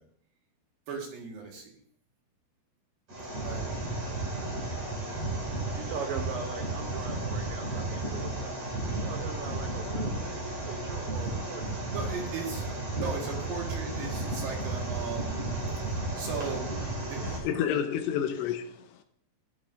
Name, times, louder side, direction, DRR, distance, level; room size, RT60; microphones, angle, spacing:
voice 1, 0.9-1.6 3.3-3.8 11.8-15.4 16.2-16.7 17.0-17.4, right 5 dB, 60° right, 3.2 m, -37 dB
sound 1, 3.1-17.4, right 2 dB, 35° right, 3.4 m, -33 dB
voice 2, 5.7-11.9, right 6 dB, 80° right, 2.1 m, -41 dB
sound 2, 9.5-12.1, left 2 dB, 55° left, 1.7 m, -48 dB
voice 3, 17.2-19.0, left 9 dB, 80° left, 2.7 m, -30 dB
14.5 x 12.0 x 2.6 m
omnidirectional pair, 5.2 m